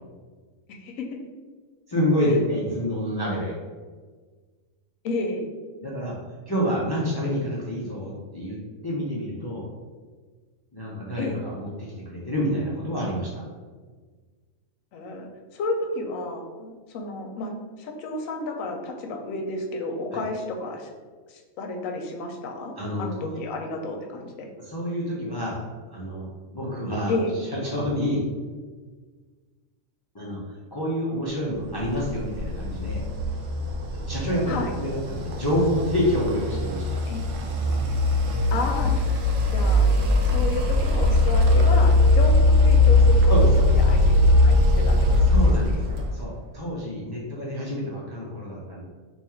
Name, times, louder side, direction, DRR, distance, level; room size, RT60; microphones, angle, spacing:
voice 1, 0.7-1.2 5.0-5.5 11.2-11.4 14.9-20.9 21.3-24.5 27.1-27.3 34.5-34.7 37.1-37.2 38.5-39.2 39.5-39.9 40.2-45.4, left 2 dB, 85° left, 3 dB, 1.0 m, -32 dB
voice 2, 1.9-3.5 5.8-6.1 6.5-9.7 10.7-13.4 20.1-20.2 22.8-23.4 24.6-25.6 25.9-27.1 27.5-28.2 30.1-33.0 33.9-37.0 43.3-43.7 45.3-48.8, equal, 40° left, -6 dB, 0.3 m, -28 dB
sound 1, 31.8-46.2, left 2 dB, 70° right, 0.9 m, -20 dB
3.1 x 2.4 x 4.3 m, 1.4 s
omnidirectional pair, 1.4 m